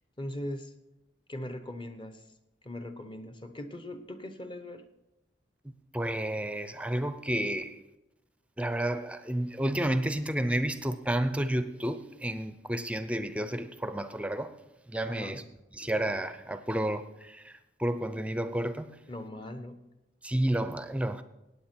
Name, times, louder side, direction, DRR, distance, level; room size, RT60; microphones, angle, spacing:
voice 1, 0.2-0.7 1.3-2.2 2.6-4.9 15.1-15.4 19.1-19.8, left 1 dB, 25° left, 0.9 m, -40 dB
voice 2, 5.9-7.8 8.6-14.6 14.9-15.4 15.7-18.9 20.2-21.2, right 1 dB, 5° right, 0.6 m, -31 dB
17.0 x 8.9 x 4.5 m
head